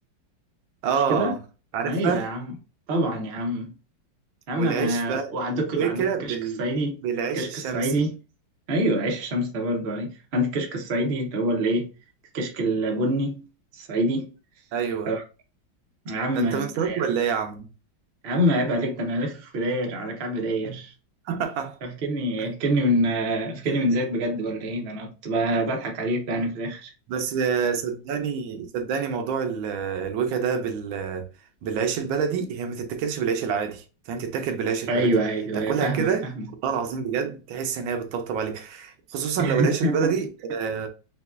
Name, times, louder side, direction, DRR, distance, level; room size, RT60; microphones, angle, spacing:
voice 1, 0.8-1.4 1.7-2.3 4.6-6.6 7.0-7.9 14.7-15.1 16.3-17.7 21.3-21.8 27.1-31.3 31.6-35.1 35.5-36.3 36.6-40.9, right 6 dB, 80° right, 1.4 m, -27 dB
voice 2, 1.8-2.5 2.9-3.7 4.5-7.0 7.3-8.1 8.7-11.9 12.3-13.4 13.7-14.3 15.1-15.2 16.0-17.1 18.2-20.9 21.8-26.9 34.9-36.4 39.4-40.2, right 1 dB, 55° right, 0.6 m, -26 dB
5.1 x 2.3 x 2.4 m
omnidirectional pair, 2.1 m